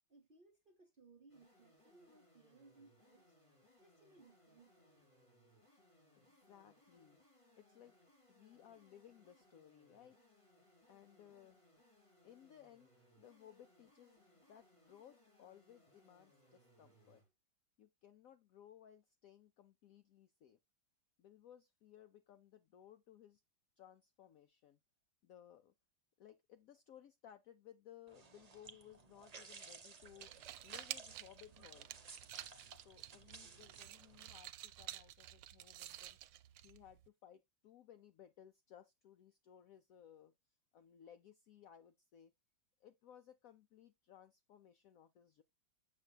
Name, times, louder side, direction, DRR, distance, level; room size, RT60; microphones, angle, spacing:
voice 1, 0.1-3.4 3.8-5.1, right 3 dB, 45° right, 0.7 m, -65 dB
sound 1, 1.3-17.3, left 1 dB, 15° left, 3.1 m, -70 dB
voice 2, 6.1-7.2 7.6-8.0 8.3-10.2 10.9-11.6 12.2-12.9 13.2-17.2 17.8-20.6 21.2-23.4 23.8-24.8 25.2-25.7 26.2-30.3 30.6-31.9 32.8-36.2 36.6-40.3 40.7-42.3 42.8-45.4, left 10 dB, 70° left, 0.8 m, -61 dB
sound 2, 28.1-34.3, right 4 dB, 65° right, 0.4 m, -57 dB
sound 3, 30.0-37.1, right 13 dB, 90° right, 1.3 m, -51 dB
7.4 x 6.7 x 2.2 m
omnidirectional pair, 2.0 m